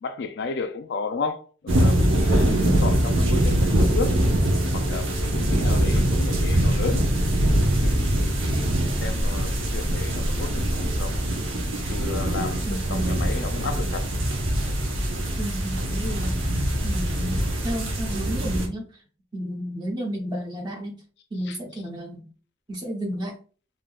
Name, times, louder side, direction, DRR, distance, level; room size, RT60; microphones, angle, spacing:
voice 1, 0.0-4.2 4.7-7.1 7.8-11.2 11.9-14.1 14.6-14.8 21.5-21.6, left 4 dB, 60° left, 0.3 m, -33 dB
sound 1, 1.7-18.7, right 1 dB, 85° right, 0.8 m, -23 dB
voice 2, 2.4-2.8 12.6-13.1 15.4-16.4 16.8-18.9 19.3-21.0 21.3-22.3 22.7-23.4, equal, 20° right, 0.7 m, -32 dB
3.5 x 2.7 x 2.3 m
head